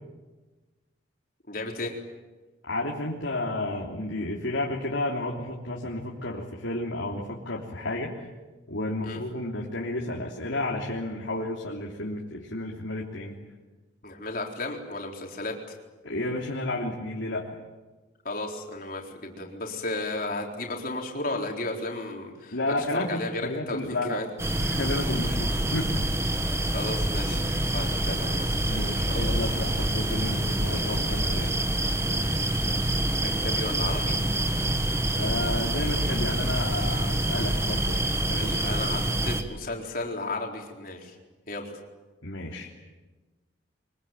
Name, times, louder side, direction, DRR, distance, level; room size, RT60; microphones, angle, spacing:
voice 1, 1.5-2.0 9.0-9.2 14.0-15.7 18.2-22.6 22.9-24.3 26.7-29.5 32.2-32.4 33.2-34.2 38.3-41.2 41.5-41.7, left 2 dB, 45° left, 1 dB, 4.1 m, -34 dB
voice 2, 2.7-8.1 8.7-13.4 16.0-17.5 22.5-24.2 24.6-26.0 27.4-27.6 28.6-31.5 35.2-38.8 42.2-42.7, left 2 dB, 90° left, -2 dB, 3.2 m, -32 dB
sound 1, 24.4-39.4, right 1 dB, 15° right, 1.6 m, -26 dB
24.0 x 23.0 x 9.2 m, 1.2 s
head